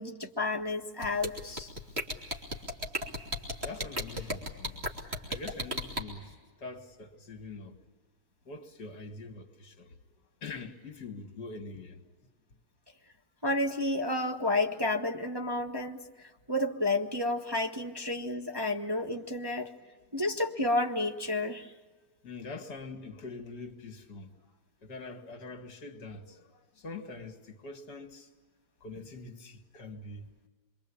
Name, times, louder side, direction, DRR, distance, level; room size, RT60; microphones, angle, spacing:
voice 1, 0.0-1.7 13.4-19.7 20.1-21.7, left 2 dB, 15° right, 1.0 m, -31 dB
sound 1, 1.0-6.0, equal, 30° right, 3.2 m, -33 dB
voice 2, 3.6-4.8 5.3-7.8 8.5-10.0 10.4-12.1 19.8-20.0 22.2-24.4 24.8-28.3 28.8-30.3, left 3 dB, 60° left, 2.7 m, -44 dB
27.0 x 23.5 x 8.7 m
omnidirectional pair, 2.1 m